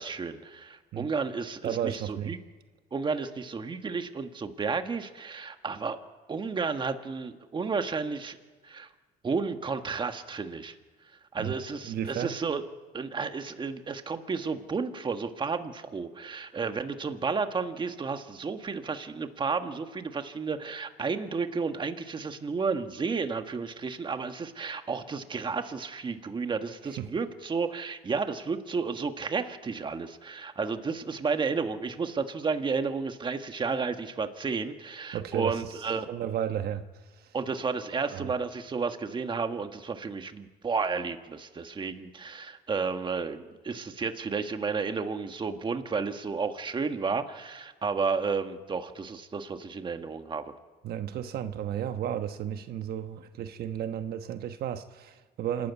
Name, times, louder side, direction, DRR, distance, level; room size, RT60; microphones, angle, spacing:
voice 1, 0.0-2.4 2.9-6.0 6.3-8.4 8.6-8.9 9.2-10.7 11.3-12.6 12.9-36.1 37.3-50.5, right 5 dB, 30° right, 7 dB, 1.6 m, -32 dB
voice 2, 1.6-2.4 11.4-11.5 11.8-12.4 27.0-27.1 35.1-37.4 38.1-38.3 50.8-55.7, right 10 dB, 65° right, 8 dB, 1.2 m, -33 dB
27.0 x 13.0 x 9.5 m, 1.4 s
cardioid pair, 110°, 17 cm